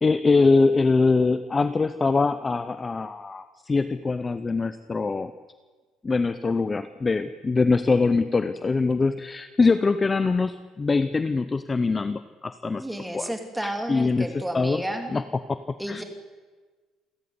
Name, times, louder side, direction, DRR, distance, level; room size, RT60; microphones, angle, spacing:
voice 1, 0.0-5.3 6.0-12.8 13.1-13.3 13.6-14.8 15.1-15.2 15.5-15.6 15.9-16.0, left 4 dB, 20° left, 11 dB, 0.8 m, -23 dB
voice 2, 12.8-15.1 15.8-16.0, right 1 dB, 5° right, 4 dB, 3.2 m, -31 dB
28.5 x 14.0 x 9.7 m, 1.4 s
cardioid pair, 150°, 0 cm